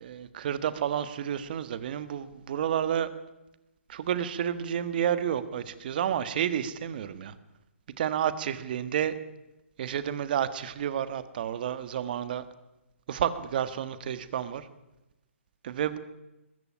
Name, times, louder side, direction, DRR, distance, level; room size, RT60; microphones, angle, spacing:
voice 1, 0.0-3.1 3.9-7.3 8.0-9.1 9.8-12.4 13.1-14.7 15.6-16.0, right 9 dB, 45° right, 13 dB, 1.6 m, -30 dB
21.0 x 14.5 x 10.0 m, 0.96 s
hypercardioid pair, 150°, 7 cm